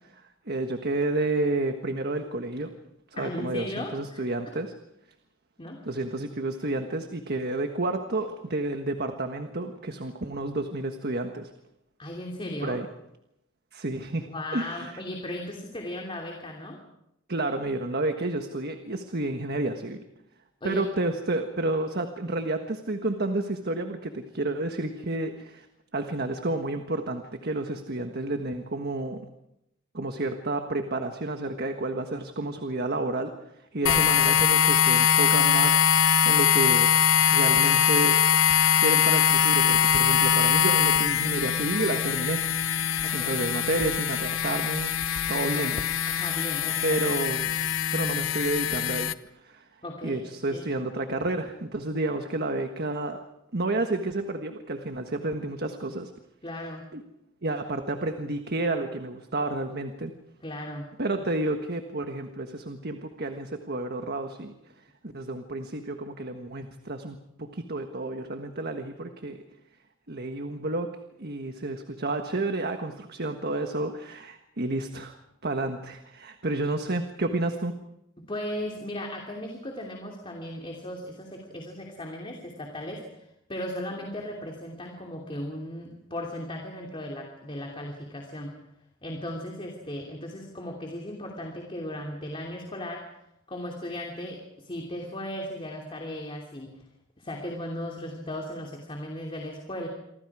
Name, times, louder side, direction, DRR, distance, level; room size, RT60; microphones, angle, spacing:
voice 1, 0.1-2.7 3.1-4.7 5.8-11.5 12.6-12.9 13.7-15.0 17.3-20.0 20.6-25.7 25.9-29.2 29.9-33.4 33.7-38.2 38.7-42.4 43.0-44.9 45.3-45.7 46.8-47.5 47.9-49.1 49.4-49.6 50.0-53.2 53.5-56.1 56.9-57.0 57.4-60.1 61.0-64.5 65.0-69.4 70.1-75.2 75.4-77.8, right 2 dB, 50° right, 6 dB, 1.5 m, -30 dB
voice 2, 3.1-4.2 5.6-5.8 12.0-12.8 14.2-16.8 20.6-20.8 33.8-34.1 43.0-43.4 45.5-45.6 46.1-47.0 49.8-50.2 50.5-50.6 56.4-56.9 60.4-60.9 78.2-88.5 89.0-93.1 93.5-96.8 97.2-99.9, left 1 dB, 25° left, 1 dB, 3.0 m, -36 dB
sound 1, 33.9-49.1, left 8 dB, 75° left, 0.9 m, -22 dB
28.0 x 24.5 x 4.9 m, 0.84 s
head